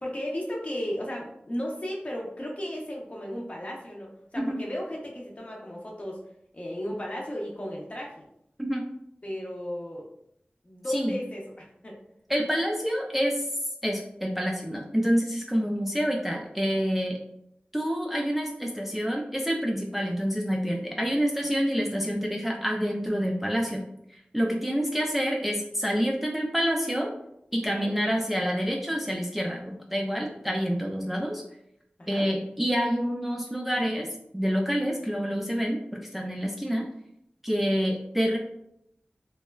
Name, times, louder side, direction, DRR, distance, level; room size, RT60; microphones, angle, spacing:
voice 1, 0.0-6.2 6.5-8.1 9.2-10.1 10.6-12.0 27.6-27.9 32.0-32.3, equal, 35° left, -2 dB, 0.7 m, -35 dB
voice 2, 12.3-13.5 13.8-17.2 17.7-23.8 24.1-27.1 27.5-31.4 32.1-34.1 34.3-36.8 37.4-38.4, equal, 5° right, 0 dB, 0.3 m, -27 dB
3.0 x 2.2 x 2.2 m, 0.77 s
wide cardioid pair, 50°, 4 cm